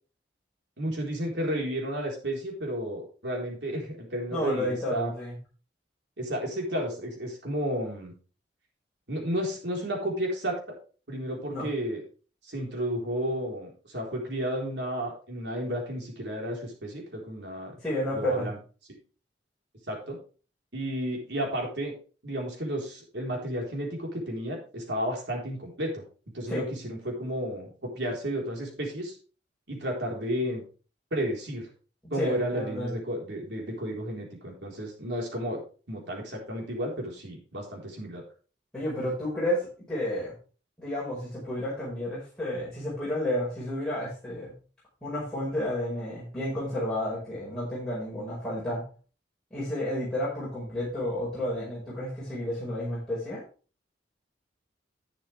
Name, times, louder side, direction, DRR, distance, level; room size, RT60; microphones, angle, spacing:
voice 1, 0.8-5.1 6.2-8.1 9.1-10.6 11.1-12.0 12.5-17.7 18.1-18.6 19.9-20.2 20.7-21.9 22.2-26.0 26.3-29.1 29.7-30.6 31.1-31.7 32.1-35.6 35.9-38.2, equal, 80° right, -1 dB, 4.2 m, -32 dB
voice 2, 4.3-5.4 11.5-11.7 17.8-18.5 26.5-26.6 32.2-32.9 38.7-40.3 40.8-44.5 45.0-48.8 49.5-53.4, left 1 dB, 5° left, -9 dB, 5.2 m, -31 dB
11.5 x 8.7 x 3.4 m, 0.38 s
head